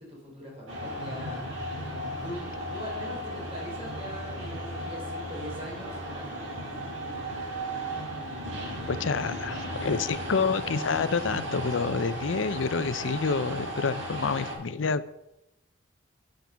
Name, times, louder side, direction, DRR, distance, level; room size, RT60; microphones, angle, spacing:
voice 1, 0.0-1.5 2.2-6.6, equal, 30° right, -3 dB, 3.5 m, -41 dB
sound 1, 0.7-14.5, equal, 90° right, 4.4 m, -35 dB
voice 2, 8.9-15.1, left 5 dB, 80° left, 14 dB, 0.6 m, -28 dB
9.5 x 7.6 x 5.7 m, 0.86 s
head